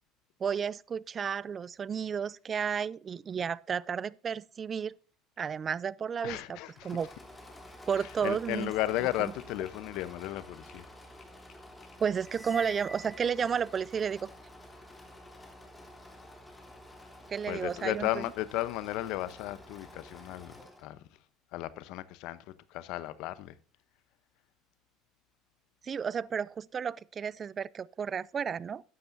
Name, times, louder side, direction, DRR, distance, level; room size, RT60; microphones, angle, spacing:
voice 1, 0.4-4.9 5.4-6.6 6.8-7.1 7.9-8.7 9.2-9.3 12.0-14.3 17.3-18.2 25.8-28.8, right 7 dB, 35° right, 0.4 m, -32 dB
voice 2, 6.2-7.0 8.0-10.8 17.5-20.5 20.8-21.0 21.5-23.5, left 15 dB, 70° left, 0.8 m, -34 dB
Engine / Mechanisms, 6.7-20.9, left 1 dB, 15° left, 3.2 m, -51 dB
sound 1, 7.3-10.9 11.2-12.7, left 6 dB, 45° left, 4.6 m, -59 dB
sound 2, 12.2-14.1, equal, 5° right, 1.1 m, -46 dB
13.0 x 10.0 x 2.7 m
supercardioid pair, 95°, 0 cm